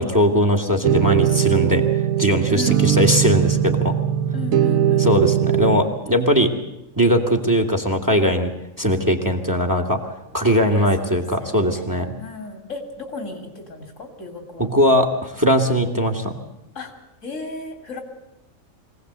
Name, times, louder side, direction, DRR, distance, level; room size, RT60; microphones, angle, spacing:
voice 1, 0.0-1.8 2.2-3.9 5.0-6.5 7.0-8.5 8.8-10.0 10.3-12.1 14.6-16.3, equal, 15° right, 6 dB, 2.1 m, -19 dB
sound 1, 0.8-5.8, right 10 dB, 85° right, 1.4 m, -19 dB
voice 2, 2.5-2.9 4.3-5.1 10.7-14.7 16.8-16.9 17.2-18.0, left 3 dB, 70° left, 5 dB, 3.7 m, -35 dB
24.0 x 17.5 x 8.1 m, 0.89 s
omnidirectional pair, 1.4 m